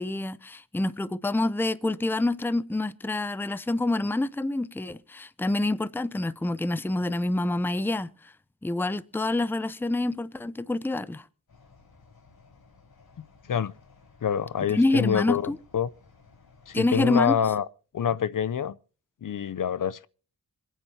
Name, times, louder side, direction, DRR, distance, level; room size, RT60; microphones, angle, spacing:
voice 1, 0.0-8.3 8.6-11.2 14.7-15.6 16.7-17.4, left 2 dB, 5° left, 0.5 m, -27 dB
sound 1, 11.5-16.8, left 4 dB, 75° left, 5.0 m, -57 dB
voice 2, 14.2-15.9 16.7-17.6 17.9-18.8 19.2-20.1, left 8 dB, 60° left, 0.6 m, -26 dB
27.0 x 9.2 x 2.8 m
wide cardioid pair, 110°, 37 cm